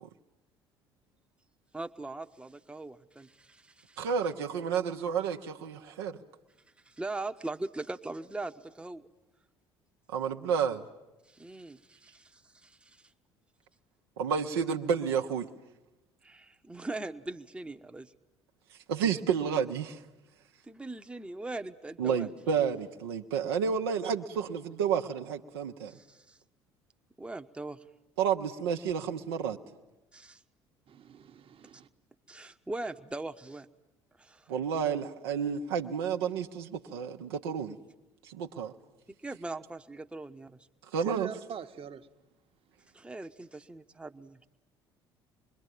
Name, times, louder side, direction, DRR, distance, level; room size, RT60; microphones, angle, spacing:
voice 1, 1.7-4.1 6.8-9.1 11.3-13.0 16.2-18.1 20.6-22.3 25.9-26.4 27.2-27.8 30.1-30.4 32.3-33.7 34.2-34.5 39.2-40.6 42.9-44.4, right 2 dB, 10° right, 1.0 m, -41 dB
voice 2, 4.0-6.2 10.1-10.8 14.2-15.5 18.9-20.0 22.0-25.9 28.2-29.6 34.5-37.8 38.3-38.7 40.9-41.3, right 7 dB, 75° right, 1.0 m, -30 dB
voice 3, 30.9-31.9 41.0-42.1, right 7 dB, 45° right, 1.2 m, -43 dB
26.0 x 21.5 x 9.3 m
figure-of-eight pair, 60°, 13 cm